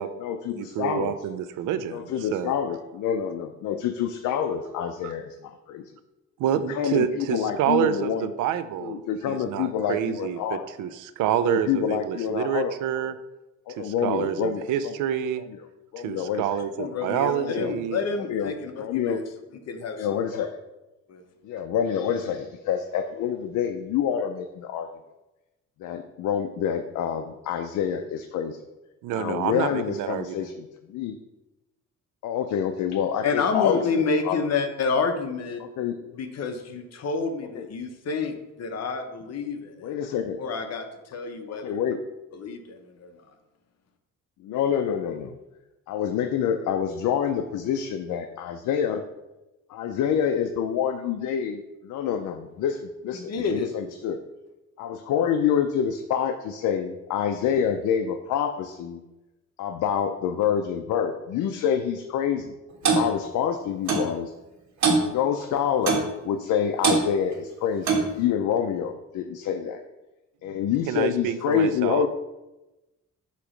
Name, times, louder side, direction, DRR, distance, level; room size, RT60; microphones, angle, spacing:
voice 1, 0.0-1.2 1.9-5.9 6.7-8.3 8.8-10.7 11.4-13.1 13.7-14.9 15.5-15.6 15.9-16.5 17.4-17.8 18.3-19.2 19.8-20.5 21.4-24.9 25.8-28.6 29.1-31.2 32.2-33.9 34.2-34.4 35.6-36.0 37.5-37.7 39.8-40.4 41.5-42.0 44.4-45.4 45.9-49.0 49.7-54.2 54.8-59.0 59.6-62.5 62.8-64.3 65.0-69.8 70.4-72.1, left 8 dB, 80° left, 6 dB, 0.6 m, -27 dB
voice 2, 0.6-2.5 5.0-5.1 6.4-9.0 9.3-13.2 13.8-15.4 16.0-18.0 29.0-30.5 70.9-72.0, right 10 dB, 90° right, 13 dB, 0.5 m, -28 dB
voice 3, 16.8-19.2 19.7-20.5 21.1-21.2 33.2-35.6 36.1-40.0 40.4-41.8 42.3-43.1 53.1-53.7, left 4 dB, 55° left, 6 dB, 0.9 m, -29 dB
Clock, 62.9-63.1 63.9-64.1 64.8-65.1 65.9-66.1 66.8-67.0 67.9-68.1, right 4 dB, 65° right, 1.6 m, -21 dB
8.2 x 3.0 x 5.1 m, 1.0 s
cardioid pair, 90°, 30 cm